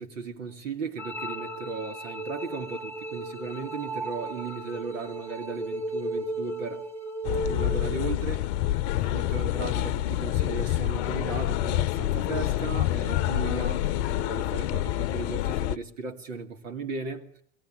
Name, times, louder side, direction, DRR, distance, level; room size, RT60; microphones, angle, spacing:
voice 1, 0.0-6.8 7.4-8.5 8.9-17.4, right 4 dB, 75° right, 2.6 m, -36 dB
sound 1, 1.0-8.0, right 2 dB, 5° left, 1.3 m, -35 dB
sound 2, 7.3-15.8, left 14 dB, 60° left, 0.8 m, -27 dB
22.5 x 17.0 x 9.0 m
hypercardioid pair, 90°, 39 cm